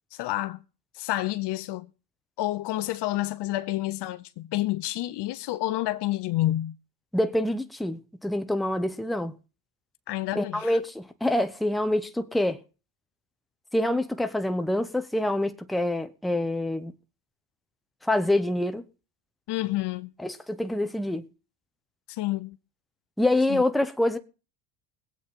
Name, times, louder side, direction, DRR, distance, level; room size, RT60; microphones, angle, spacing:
voice 1, 0.1-0.6 0.9-1.9 2.4-6.8 10.1-10.8 19.5-20.1 22.1-22.6 23.5-23.6, left 16 dB, 55° left, 0.9 m, -29 dB
voice 2, 7.1-9.3 10.3-12.6 13.7-16.9 18.0-18.8 20.2-21.3 23.2-24.2, left 1 dB, ahead, 1.0 m, -26 dB
21.5 x 8.3 x 3.7 m
supercardioid pair, 85°, 49 cm